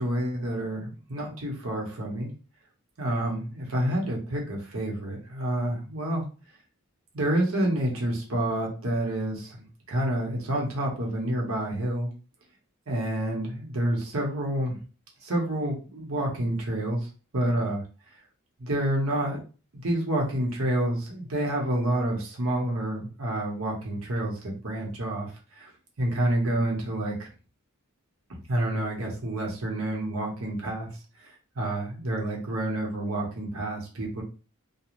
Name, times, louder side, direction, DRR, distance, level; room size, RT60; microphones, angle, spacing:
voice 1, 0.0-2.3 3.0-6.3 7.1-12.1 12.9-14.8 15.2-17.1 17.3-17.8 18.6-19.4 19.7-25.3 25.6-25.7 26.0-27.3 28.5-30.9 31.6-34.2, right 1 dB, 80° right, -1 dB, 1.0 m, -28 dB
2.5 x 2.3 x 3.1 m, 0.35 s
head